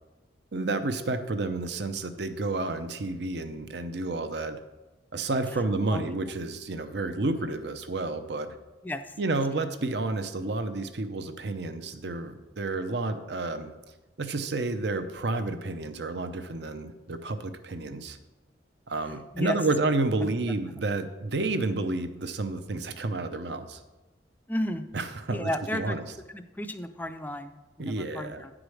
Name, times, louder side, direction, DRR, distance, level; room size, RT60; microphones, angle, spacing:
voice 1, 0.5-4.6 5.1-8.5 9.2-13.7 14.2-18.2 18.9-23.8 24.9-26.1 27.8-28.4, right 2 dB, 65° right, 9 dB, 0.7 m, -30 dB
voice 2, 8.8-9.1 9.6-9.7 19.3-19.6 20.2-20.3 24.5-24.8 25.3-26.0 26.3-28.5, left 1 dB, 10° left, 8 dB, 0.5 m, -33 dB
9.7 x 5.0 x 6.3 m, 1.1 s
head